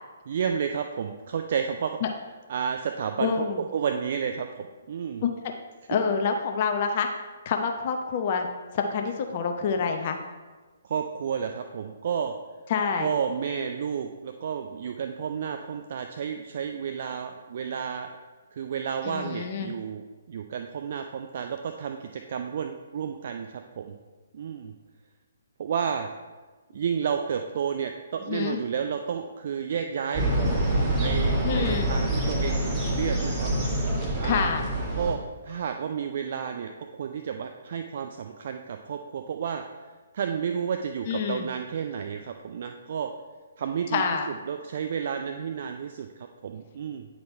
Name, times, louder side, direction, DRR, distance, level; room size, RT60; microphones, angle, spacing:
voice 1, 0.3-2.0 2.5-3.5 3.7-5.2 10.8-12.3 13.0-18.1 18.5-23.9 24.3-24.7 25.6-26.1 26.7-30.2 31.0-33.5 33.8-33.9 34.2-34.5 35.0-39.6 40.1-43.1 43.6-47.1, right 7 dB, 45° right, 5 dB, 0.4 m, -31 dB
voice 2, 3.2-3.6 5.2-5.3 5.9-7.1 7.5-8.5 8.7-10.2 12.7-13.1 19.0-19.7 28.3-28.6 31.4-31.9 34.2-34.6 41.1-41.5 43.9-44.3, left 6 dB, 35° left, 4 dB, 0.6 m, -27 dB
sound 1, 30.1-35.2, right 1 dB, 20° right, 1.3 m, -26 dB
9.3 x 4.0 x 4.4 m, 1.3 s
figure-of-eight pair, 130°, 0 cm